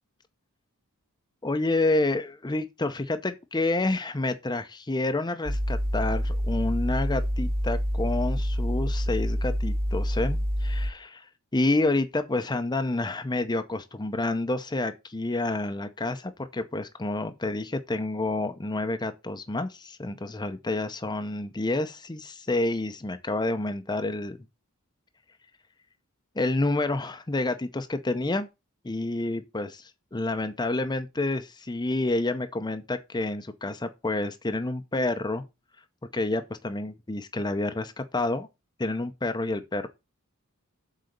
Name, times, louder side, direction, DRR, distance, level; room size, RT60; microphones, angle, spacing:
voice 1, 1.4-11.3 11.5-24.4 26.4-28.5 28.8-35.4 36.1-38.5 38.8-39.9, left 2 dB, 20° left, 0.6 m, -29 dB
sound 1, 5.5-10.9, equal, 40° right, 1.1 m, -27 dB
7.7 x 4.1 x 6.6 m
head